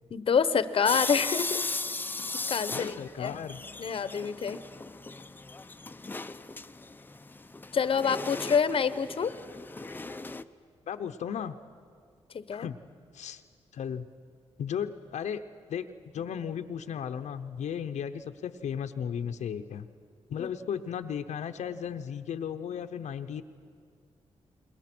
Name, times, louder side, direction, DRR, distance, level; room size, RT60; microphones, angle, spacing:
voice 1, 0.1-1.6 2.5-3.4 3.8-4.6 7.7-9.3 12.3-12.7 20.4-20.5, left 6 dB, 50° left, 13 dB, 0.9 m, -27 dB
sound 1, 0.9-10.4, left 3 dB, 15° left, 0.6 m, -37 dB
voice 2, 2.7-3.6 9.9-10.0 10.9-11.6 12.5-12.8 13.1-13.4 13.7-14.1 14.6-15.4 15.7-15.9 16.1-19.9 20.3-23.4, left 8 dB, 90° left, 7 dB, 0.8 m, -35 dB
29.5 x 21.5 x 6.1 m, 2.2 s
cardioid pair, 110°, 12 cm